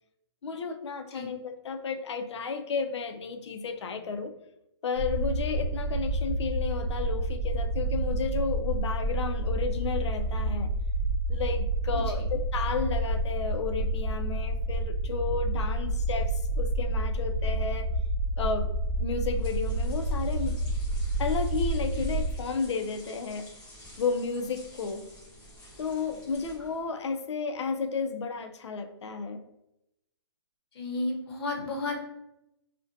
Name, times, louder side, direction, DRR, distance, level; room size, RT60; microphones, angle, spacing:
voice 1, 0.4-4.3 4.8-10.7 11.3-17.9 18.4-20.6 21.2-23.5 24.0-25.0 25.8-29.4, left 5 dB, 75° left, 7 dB, 0.4 m, -32 dB
sound 1, 5.0-22.4, right 1 dB, 85° right, 0.8 m, -29 dB
voice 2, 11.9-12.3 30.7-32.2, left 2 dB, 60° left, 0 dB, 0.8 m, -33 dB
sound 2, 19.1-26.9, equal, 5° left, 0.4 m, -50 dB
2.4 x 2.1 x 2.5 m, 0.86 s
hypercardioid pair, 165°, 15 cm